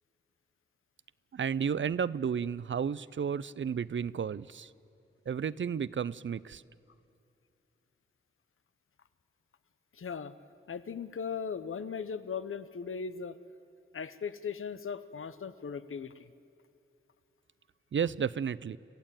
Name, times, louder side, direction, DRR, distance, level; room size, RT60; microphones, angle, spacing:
voice 1, 1.3-4.7 5.3-6.6 17.9-18.8, right 7 dB, 65° right, 18 dB, 0.5 m, -32 dB
voice 2, 9.9-10.3 10.7-13.4 13.9-16.3, left 6 dB, 80° left, 14 dB, 0.8 m, -38 dB
27.0 x 15.0 x 9.0 m, 2.7 s
wide cardioid pair, 85°, 21 cm